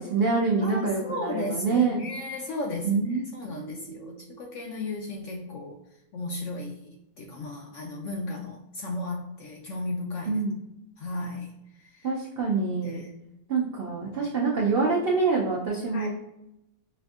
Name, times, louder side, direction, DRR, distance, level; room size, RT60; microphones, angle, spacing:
voice 1, 0.0-2.0 2.8-4.3 10.2-10.6 12.0-13.0 13.5-16.1, right 4 dB, 80° right, -2 dB, 0.5 m, -26 dB
voice 2, 0.6-5.8 6.1-10.4 11.0-11.5 12.8-13.1 15.9-16.1, left 2 dB, 70° left, 1 dB, 0.7 m, -35 dB
5.6 x 2.5 x 2.3 m, 0.88 s
omnidirectional pair, 1.7 m